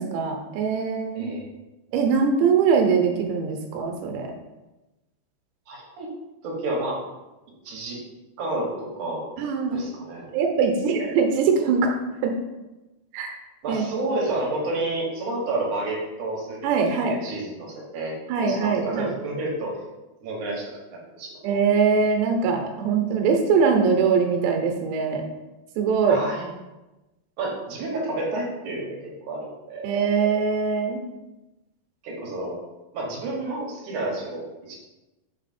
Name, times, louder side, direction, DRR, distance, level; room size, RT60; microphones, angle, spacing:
voice 1, 0.0-1.3 1.9-4.3 9.4-9.8 10.3-11.9 12.2-12.3 13.1-13.4 13.7-13.8 16.6-17.2 18.3-19.1 21.4-25.2 25.8-26.2 29.8-31.0, right 5 dB, 80° right, 3 dB, 2.9 m, -22 dB
voice 2, 5.7-6.1 6.4-7.0 7.6-8.0 8.4-9.3 9.7-10.3 13.6-19.7 20.2-21.4 26.1-26.4 27.4-29.9 30.2-30.3 32.0-32.6 32.9-34.7, right 2 dB, 65° right, -3 dB, 2.1 m, -30 dB
6.0 x 4.3 x 4.2 m, 1.0 s
omnidirectional pair, 5.1 m